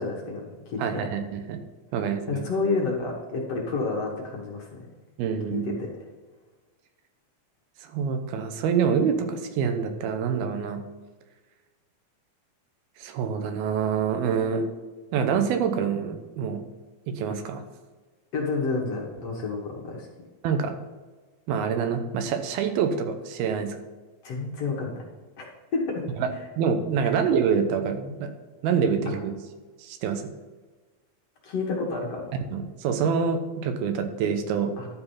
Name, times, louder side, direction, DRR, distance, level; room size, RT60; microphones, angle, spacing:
voice 1, 0.0-0.8 2.3-4.7 5.5-5.9 18.3-20.1 24.2-24.9 25.4-25.5 25.7-26.0 27.0-27.1 31.4-32.3 34.8-34.9, left 3 dB, 55° left, -2 dB, 2.1 m, -29 dB
voice 2, 0.8-1.6 1.9-2.5 5.2-5.8 7.8-10.8 13.0-14.7 15.1-16.6 17.1-17.6 20.4-20.7 21.5-23.8 26.2-26.3 26.6-28.3 28.6-29.3 29.8-30.2 32.3-34.7, right 6 dB, 90° right, 7 dB, 2.9 m, -26 dB
12.0 x 4.9 x 5.6 m, 1.3 s
omnidirectional pair, 4.2 m